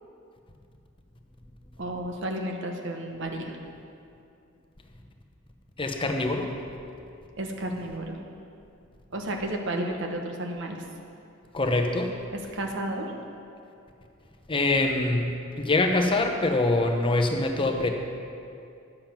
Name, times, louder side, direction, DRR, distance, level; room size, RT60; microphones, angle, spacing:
voice 1, 1.8-3.6 7.4-8.2 9.1-10.8 12.5-13.1, right 1 dB, 65° right, 2 dB, 1.2 m, -32 dB
voice 2, 5.8-6.5 11.5-12.1 14.5-15.3 15.6-17.9, left 2 dB, 25° left, 4 dB, 0.8 m, -24 dB
10.5 x 7.4 x 5.9 m, 2.5 s
head